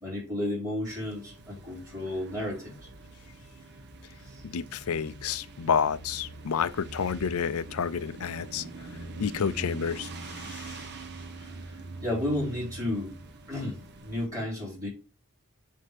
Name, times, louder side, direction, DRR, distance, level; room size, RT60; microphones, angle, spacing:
voice 1, 0.0-2.7 4.3-4.4 12.0-13.1 13.5-14.9, left 1 dB, 15° right, 3.8 m, -32 dB
sound 1, 0.9-14.3, right 2 dB, 50° right, 0.9 m, -44 dB
voice 2, 4.4-8.7 9.2-10.9, left 7 dB, 70° left, 0.5 m, -30 dB
7.4 x 2.8 x 5.0 m
head